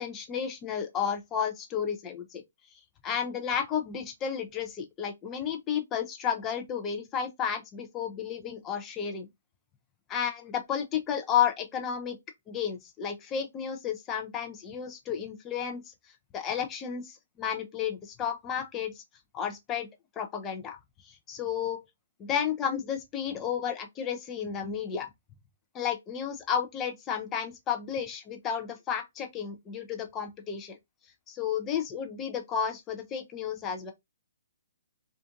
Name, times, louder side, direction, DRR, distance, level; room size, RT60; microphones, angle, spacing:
voice 1, 0.0-2.4 3.0-9.3 10.1-12.2 12.5-15.9 16.3-19.0 19.3-19.9 20.2-20.8 21.3-21.8 22.2-25.1 25.7-30.8 31.3-33.9, left 8 dB, 20° left, 0.5 m, -32 dB
2.5 x 2.5 x 2.4 m
hypercardioid pair, 135°, 0 cm